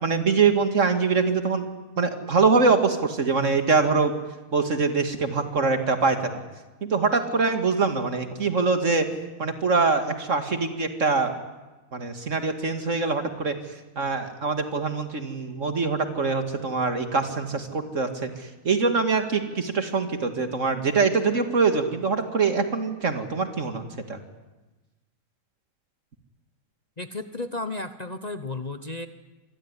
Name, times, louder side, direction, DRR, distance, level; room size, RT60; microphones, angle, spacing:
voice 1, 0.0-1.7 2.0-4.1 4.5-6.3 6.8-9.1 9.4-11.3 11.9-13.6 14.0-24.2, right 4 dB, 55° right, 7 dB, 2.6 m, -24 dB
voice 2, 27.0-29.1, left 2 dB, 30° left, 10 dB, 1.1 m, -33 dB
27.0 x 21.5 x 9.9 m, 1.2 s
omnidirectional pair, 1.5 m